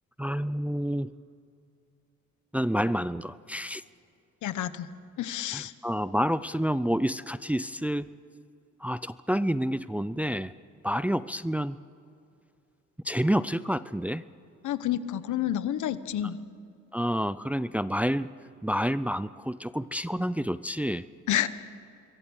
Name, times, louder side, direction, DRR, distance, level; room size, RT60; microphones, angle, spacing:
voice 1, 0.2-1.1 2.5-3.8 5.5-8.1 8.8-10.5 10.8-11.8 13.0-14.2 16.9-18.3 18.6-21.0, equal, 5° right, 15 dB, 0.5 m, -28 dB
voice 2, 4.4-4.9 5.2-5.7 14.6-16.4 21.3-21.5, left 11 dB, 75° left, 13 dB, 1.1 m, -29 dB
27.0 x 22.0 x 6.5 m, 2.5 s
cardioid pair, 90°, 30 cm